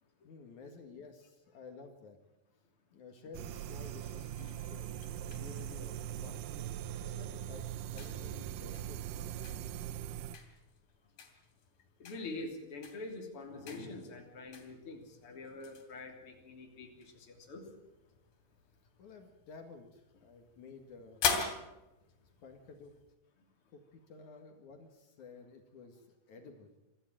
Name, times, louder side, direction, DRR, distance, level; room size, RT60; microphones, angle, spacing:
voice 1, 0.2-2.2 2.9-6.4 6.8-7.6 7.9-9.4 19.0-21.2 21.7-21.8 22.4-22.9 23.7-26.7, left 4 dB, 60° left, 4 dB, 3.2 m, -53 dB
sound 1, 3.3-10.4, right 11 dB, 80° right, 2.5 m, -41 dB
sound 2, 4.4-23.2, left 6 dB, 85° left, 4.5 m, -44 dB
voice 2, 12.0-17.6, left 2 dB, 40° left, 2 dB, 3.9 m, -45 dB
24.5 x 14.0 x 9.1 m, 1.0 s
omnidirectional pair, 4.0 m